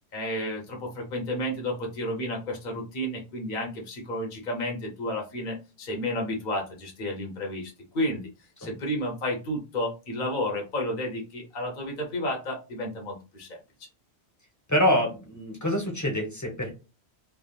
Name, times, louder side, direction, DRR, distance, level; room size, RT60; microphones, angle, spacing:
voice 1, 0.1-8.3 8.6-13.6, left 1 dB, 45° left, 0 dB, 0.9 m, -31 dB
voice 2, 14.7-16.8, left 1 dB, 15° left, 0 dB, 0.9 m, -26 dB
3.3 x 2.3 x 2.4 m, 0.29 s
omnidirectional pair, 1.2 m